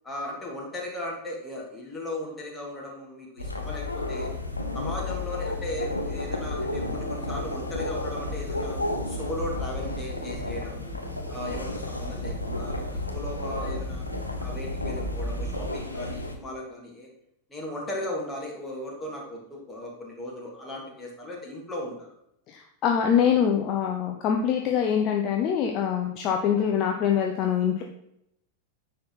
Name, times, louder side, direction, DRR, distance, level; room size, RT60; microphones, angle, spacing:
voice 1, 0.0-4.3 4.7-8.8 9.1-10.9 11.3-14.0 14.4-17.1 17.5-22.1, left 1 dB, 15° left, -2 dB, 2.8 m, -37 dB
sound 1, 3.4-16.4, left 1 dB, 85° left, 1.0 m, -33 dB
sound 2, 3.4-15.7, left 2 dB, 20° right, 1.7 m, -37 dB
voice 2, 22.5-27.8, left 8 dB, 35° left, 2 dB, 0.9 m, -24 dB
9.6 x 4.5 x 5.7 m, 0.79 s
figure-of-eight pair, 90°, 0 cm